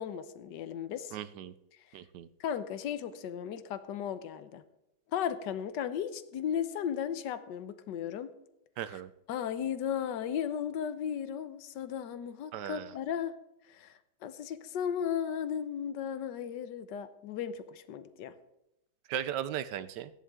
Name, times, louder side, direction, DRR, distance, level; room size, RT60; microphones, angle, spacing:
voice 1, 0.0-1.2 2.4-4.6 5.1-8.3 8.9-9.0 9.3-13.3 13.7-18.3, left 8 dB, 70° left, 11 dB, 1.4 m, -35 dB
voice 2, 1.1-1.5 1.9-2.3 8.8-9.1 12.5-12.9 19.1-20.1, right 10 dB, 70° right, 13 dB, 1.2 m, -37 dB
16.5 x 11.0 x 3.7 m, 0.84 s
omnidirectional pair, 2.1 m